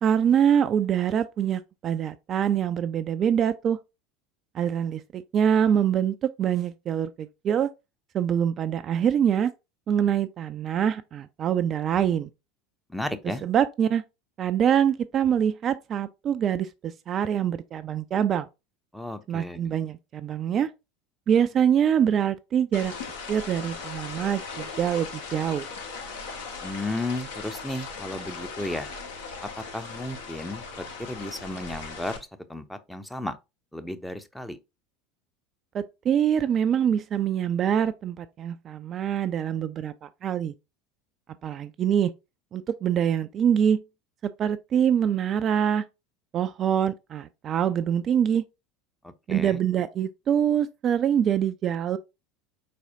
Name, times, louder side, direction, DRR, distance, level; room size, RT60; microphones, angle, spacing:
voice 1, 0.0-3.8 4.5-7.7 8.1-9.5 9.9-12.3 13.4-14.0 14.4-18.5 19.3-20.7 21.3-22.9 23.3-25.7 35.7-40.5 41.4-42.1 42.5-43.8 44.2-45.8 46.3-48.4 49.3-52.0, right 9 dB, 40° right, 0.3 m, -24 dB
voice 2, 12.9-13.4 18.9-19.6 26.6-28.9 29.4-33.4 33.7-34.6 49.0-49.6, left 1 dB, 5° left, 0.6 m, -34 dB
sound 1, 22.7-32.2, left 4 dB, 70° left, 1.2 m, -38 dB
4.6 x 4.2 x 2.7 m
figure-of-eight pair, 75°, 0 cm